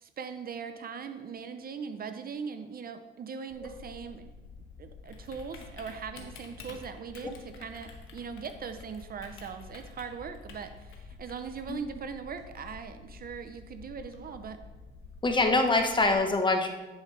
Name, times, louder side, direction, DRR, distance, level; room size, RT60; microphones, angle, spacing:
voice 1, 0.0-4.3 4.8-14.6, right 6 dB, 50° right, 9 dB, 0.6 m, -40 dB
Typing, 3.5-16.2, left 4 dB, 80° left, 1.3 m, -49 dB
voice 2, 15.2-16.7, left 2 dB, 25° left, 4 dB, 1.0 m, -24 dB
10.5 x 5.1 x 3.3 m, 1.2 s
cardioid pair, 90°, 20 cm